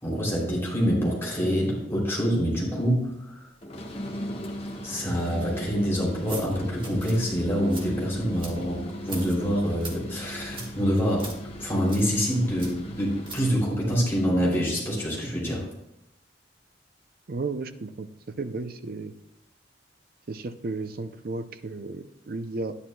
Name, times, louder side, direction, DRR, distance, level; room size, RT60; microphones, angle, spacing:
voice 1, 0.0-3.5 4.8-11.3 11.6-15.7, equal, 15° left, -5 dB, 3.0 m, -26 dB
sound 1, 3.6-13.6, equal, 35° left, 1.2 m, -38 dB
sound 2, 6.1-14.1, right 3 dB, 30° right, 1.5 m, -44 dB
voice 2, 17.3-18.1 18.4-19.1 20.3-22.8, right 3 dB, 55° right, 10 dB, 0.6 m, -33 dB
10.5 x 9.8 x 2.3 m, 0.83 s
head